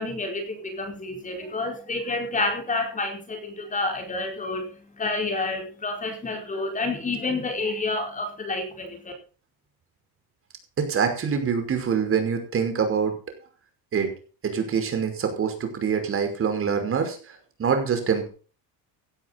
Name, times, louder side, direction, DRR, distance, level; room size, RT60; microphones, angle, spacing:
voice 1, 0.0-9.1, left 2 dB, 20° left, 4 dB, 4.6 m, -29 dB
voice 2, 10.8-13.1 13.9-14.1 14.4-18.3, right 6 dB, 35° right, 6 dB, 5.4 m, -25 dB
17.0 x 12.0 x 4.1 m, 0.38 s
cardioid pair, 135°, 38 cm